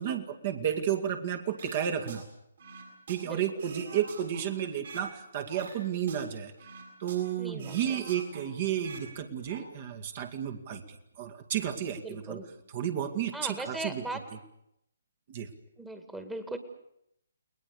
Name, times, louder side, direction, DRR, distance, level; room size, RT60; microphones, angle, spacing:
voice 1, 0.0-2.3 3.1-6.5 7.0-12.4 12.7-14.0 15.3-15.5, right 9 dB, 40° right, 6 dB, 2.2 m, -32 dB
sound 1, 1.6-2.2 2.6-5.1 5.5-7.3 7.6-9.1 9.3-9.6, right 4 dB, 55° right, 7.4 m, -46 dB
voice 2, 7.4-8.1 12.0-12.5 13.3-14.2 15.8-16.6, right 2 dB, 5° right, 7 dB, 2.1 m, -38 dB
30.0 x 20.0 x 6.8 m, 0.76 s
figure-of-eight pair, 135°, 0 cm